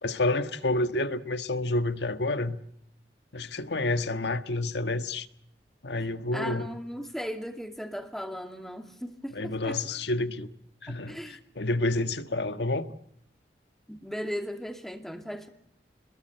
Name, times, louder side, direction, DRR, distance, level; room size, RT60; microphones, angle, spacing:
voice 1, 0.0-2.6 3.3-5.3 5.8-6.7 9.3-10.5 10.8-12.9, left 2 dB, 80° left, 1.6 m, -29 dB
voice 2, 6.3-9.8 10.9-11.4 13.9-15.5, equal, ahead, 2.5 m, -37 dB
28.0 x 21.5 x 7.9 m
head